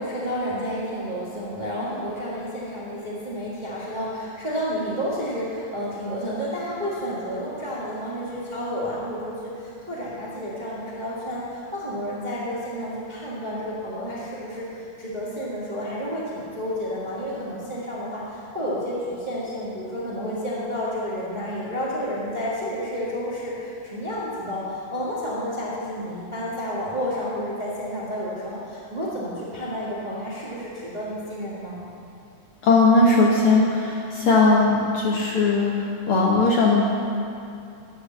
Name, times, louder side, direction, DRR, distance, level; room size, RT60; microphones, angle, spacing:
voice 1, 0.0-31.8, equal, 20° right, -7 dB, 1.1 m, -30 dB
voice 2, 32.6-35.7 36.1-36.9, left 3 dB, 60° left, -3 dB, 1.6 m, -18 dB
11.5 x 6.3 x 7.3 m, 2.6 s
omnidirectional pair, 3.4 m